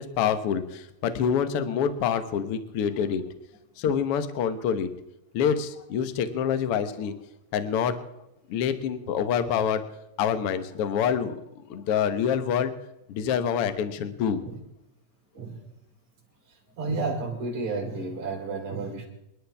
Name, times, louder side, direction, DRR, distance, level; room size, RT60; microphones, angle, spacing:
voice 1, 0.0-3.2 3.8-4.9 5.3-7.1 7.5-7.9 8.5-9.8 10.2-11.3 11.7-12.7 13.1-14.4, left 8 dB, 60° left, 10 dB, 1.5 m, -26 dB
voice 2, 15.3-15.7 16.5-19.1, right 3 dB, 55° right, 0 dB, 5.0 m, -32 dB
27.0 x 11.5 x 3.5 m, 0.87 s
omnidirectional pair, 4.0 m